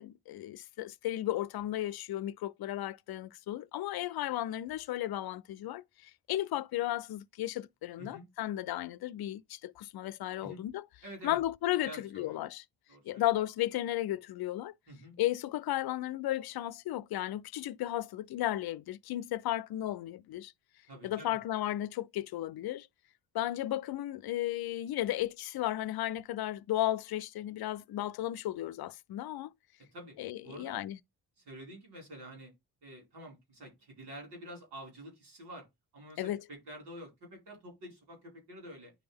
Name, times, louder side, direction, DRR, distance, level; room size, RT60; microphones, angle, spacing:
voice 1, 0.0-10.8 11.2-12.6 13.1-14.7 15.2-20.5 21.0-22.9 23.3-29.5 30.2-31.0 36.2-36.4, left 14 dB, 65° left, 0.5 m, -34 dB
voice 2, 11.0-11.4 11.8-12.4 12.9-13.2 14.9-15.2 20.9-21.4 29.9-30.2 30.4-30.8 31.4-32.5 32.8-35.7 35.9-38.9, equal, 85° right, 4.9 m, -48 dB
9.7 x 3.4 x 3.4 m
supercardioid pair, 50°, 39 cm